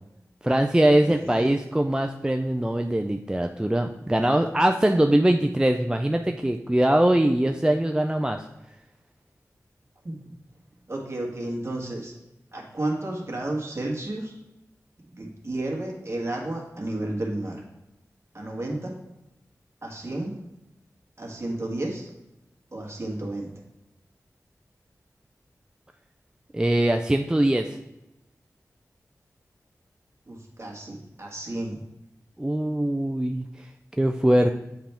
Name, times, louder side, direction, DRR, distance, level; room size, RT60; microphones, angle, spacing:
voice 1, 0.4-8.4 26.5-27.8 32.4-33.5 34.0-34.5, right 1 dB, 10° right, 5 dB, 0.4 m, -22 dB
voice 2, 1.0-1.6 10.0-10.1 10.9-12.1 12.5-14.3 15.1-17.6 18.3-18.9 19.8-20.3 21.2-22.1 22.7-23.5 30.3-31.8, right 1 dB, 45° right, -1 dB, 1.6 m, -32 dB
7.3 x 3.5 x 4.3 m, 0.92 s
cardioid pair, 45°, 6 cm